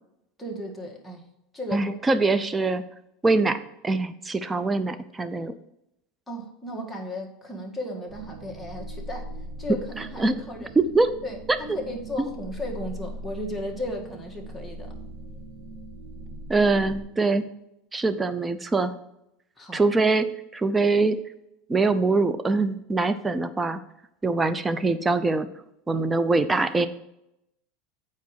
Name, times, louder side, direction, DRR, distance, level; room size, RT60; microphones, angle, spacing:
voice 1, 0.4-1.2 1.5-2.2 6.3-9.3 9.6-10.7 11.2-14.9 19.6-19.8, left 1 dB, 5° left, -2 dB, 1.8 m, -35 dB
voice 2, 1.7-2.8 3.2-5.5 10.2-10.4 10.8-11.1 11.5-11.8 12.2-12.3 16.5-17.5 17.9-18.9 19.7-21.2 21.7-23.8 24.2-25.5 25.9-26.9, right 3 dB, 15° right, 12 dB, 0.6 m, -23 dB
sound 1, 8.1-17.0, right 1 dB, 70° right, 1.8 m, -40 dB
8.2 x 4.7 x 4.8 m, 0.83 s
supercardioid pair, 110°, 0 cm